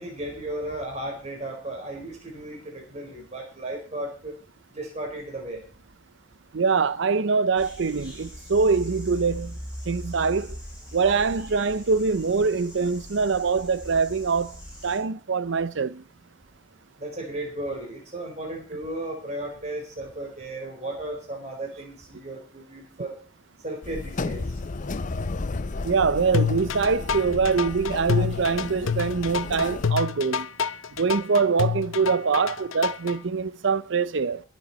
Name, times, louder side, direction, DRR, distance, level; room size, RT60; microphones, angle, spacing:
voice 1, 0.0-4.3 4.7-5.6 17.0-23.2 23.6-24.5 28.3-28.4, right 1 dB, 35° right, 4.4 m, -35 dB
voice 2, 6.5-9.6 9.9-10.6 10.9-14.6 14.8-16.0 25.8-30.5 31.0-34.4, right 5 dB, 65° right, 0.6 m, -24 dB
sound 1, 7.6-15.0, equal, 5° right, 7.1 m, -40 dB
sound 2, 23.8-29.9, left 3 dB, 40° left, 0.6 m, -33 dB
sound 3, 26.3-33.2, left 6 dB, 80° left, 0.6 m, -27 dB
22.0 x 8.3 x 4.2 m
head